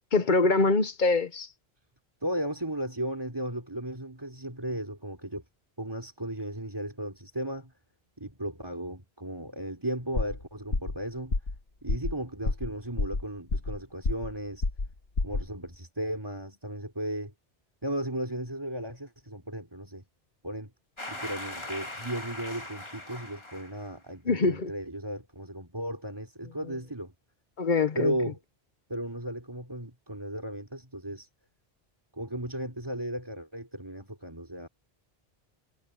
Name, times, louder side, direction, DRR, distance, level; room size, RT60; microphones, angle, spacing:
voice 1, 0.1-1.5 24.3-24.7 27.6-28.1, left 3 dB, 50° left, 1.1 m, -24 dB
voice 2, 2.2-5.4 5.8-7.7 8.2-11.4 11.8-14.7 15.2-17.3 17.8-20.0 20.4-20.7 21.1-27.1 27.9-28.4 28.9-31.3 32.1-34.7, right 1 dB, 25° right, 3.6 m, -35 dB
sound 1, 10.2-10.4 10.7-11.0 11.3-11.6 11.9-12.1 12.5-12.7 13.0-13.8 14.0-14.4 14.6-14.9 15.2-15.5, left 3 dB, 75° left, 2.2 m, -28 dB
sound 2, 21.0-23.9, left 1 dB, 25° left, 2.6 m, -40 dB
omnidirectional pair, 1.1 m